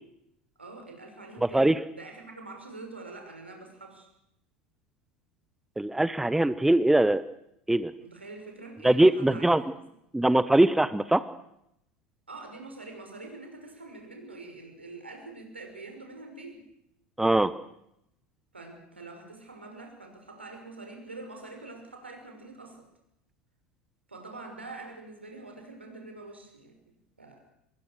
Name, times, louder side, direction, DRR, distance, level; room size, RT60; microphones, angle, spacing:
voice 1, 0.6-4.1 8.0-9.6 12.3-16.6 18.5-22.9 24.1-27.4, right 3 dB, 80° right, 3 dB, 5.8 m, -45 dB
voice 2, 5.8-7.2 7.7-7.9 8.8-9.6 10.1-11.2 17.2-17.5, right 1 dB, 5° right, 15 dB, 1.0 m, -21 dB
25.5 x 22.0 x 6.7 m, 0.79 s
figure-of-eight pair, 75°, 6 cm